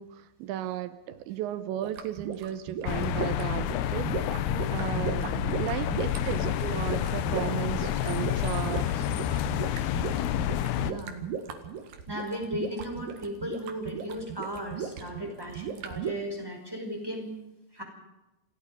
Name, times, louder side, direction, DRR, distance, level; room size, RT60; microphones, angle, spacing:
voice 1, 0.0-4.1 4.7-9.1, right 12 dB, 75° right, 13 dB, 3.0 m, -35 dB
sound 1, 1.8-16.1, right 7 dB, 55° right, 3.0 m, -37 dB
sound 2, 2.9-10.9, left 11 dB, 75° left, 2.5 m, -29 dB
voice 2, 5.2-5.8 10.8-11.3 12.1-17.3 17.7-17.8, equal, 5° right, 1 dB, 4.7 m, -36 dB
28.0 x 17.0 x 5.4 m, 1.0 s
omnidirectional pair, 5.5 m